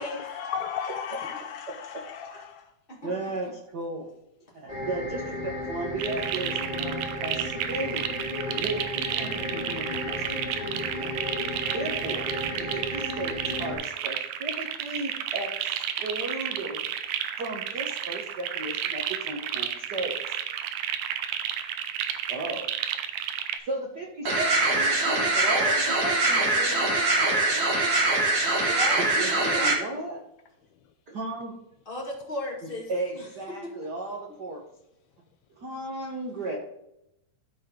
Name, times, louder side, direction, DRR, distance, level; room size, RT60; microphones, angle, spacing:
voice 1, 0.4-2.6, left 8 dB, 80° left, 6 dB, 1.7 m, -35 dB
voice 2, 1.7-2.0 2.3-2.4 3.0-4.1 4.5-8.0 8.5-10.2 10.6-11.1 11.7-12.3 12.6-16.8 17.4-20.1 22.3-22.7 23.7-26.9 27.1-27.6 28.4-28.7 29.0-30.2 31.1-31.5 32.6-34.6 35.6-36.6, right 2 dB, 65° right, 0 dB, 1.0 m, -35 dB
sound 1, 4.7-13.7, left 1 dB, 15° right, 1.5 m, -34 dB
sound 2, 6.0-23.6, right 10 dB, 90° right, 2.3 m, -32 dB
sound 3, 24.3-29.7, right 2 dB, 40° right, 1.4 m, -23 dB
voice 3, 28.6-29.0 29.4-29.7 31.8-33.3 33.6-33.7, left 1 dB, 25° left, -1 dB, 1.4 m, -36 dB
13.5 x 4.7 x 3.7 m, 0.83 s
omnidirectional pair, 3.6 m